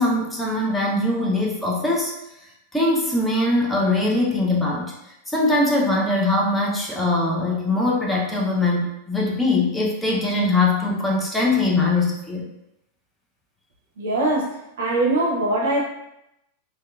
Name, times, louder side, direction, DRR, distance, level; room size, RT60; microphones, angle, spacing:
voice 1, 0.0-2.1 2.7-4.9 5.3-12.5, left 2 dB, 10° left, -3 dB, 0.5 m, -21 dB
voice 2, 14.0-15.8, right 2 dB, 60° right, -1 dB, 0.6 m, -22 dB
2.7 x 2.2 x 2.3 m, 0.84 s
figure-of-eight pair, 90°, 0 cm